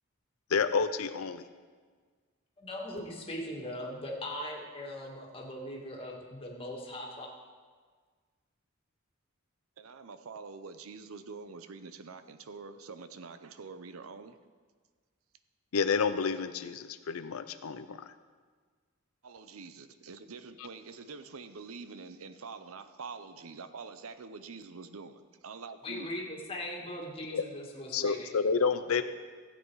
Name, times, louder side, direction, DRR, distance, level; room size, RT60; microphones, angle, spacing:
voice 1, 0.5-1.4 15.7-18.1 27.3-27.4 27.9-29.0, left 5 dB, 90° left, 10 dB, 0.6 m, -29 dB
voice 2, 2.6-7.3 25.8-28.3, left 1 dB, 25° left, -1 dB, 2.0 m, -40 dB
voice 3, 9.8-14.4 19.2-26.1, right 4 dB, 80° right, 11 dB, 0.7 m, -46 dB
15.5 x 8.0 x 4.7 m, 1.5 s
head